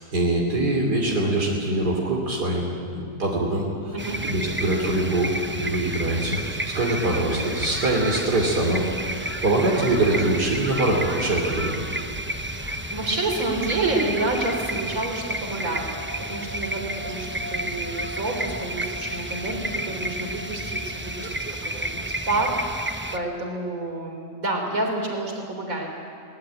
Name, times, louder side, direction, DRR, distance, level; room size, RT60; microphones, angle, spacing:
voice 1, 0.0-11.8, right 2 dB, 75° right, -2 dB, 3.6 m, -24 dB
sound 1, 4.0-23.2, right 1 dB, 15° right, 0.4 m, -31 dB
sound 2, 8.1-12.9, left 1 dB, 45° left, 3.0 m, -46 dB
voice 2, 12.6-15.9 16.3-25.9, right 2 dB, 55° right, 2 dB, 4.1 m, -29 dB
sound 3, 15.7-22.2, equal, 70° left, 2.8 m, -41 dB
23.0 x 19.5 x 8.8 m, 2.3 s
omnidirectional pair, 1.7 m